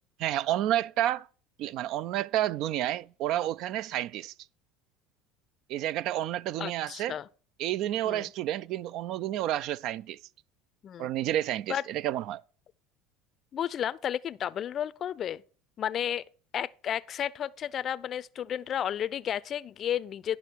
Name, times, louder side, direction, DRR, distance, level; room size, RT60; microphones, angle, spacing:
voice 1, 0.2-1.3 1.6-4.3 5.7-7.1 7.6-10.2 11.0-12.4, right 13 dB, 60° right, 0.3 m, -30 dB
voice 2, 6.6-7.3 8.1-8.3 10.8-11.1 11.7-11.8 13.5-15.4 15.8-16.2 16.5-20.4, left 10 dB, 40° left, 0.5 m, -32 dB
11.0 x 5.7 x 4.5 m
supercardioid pair, 110°, 0 cm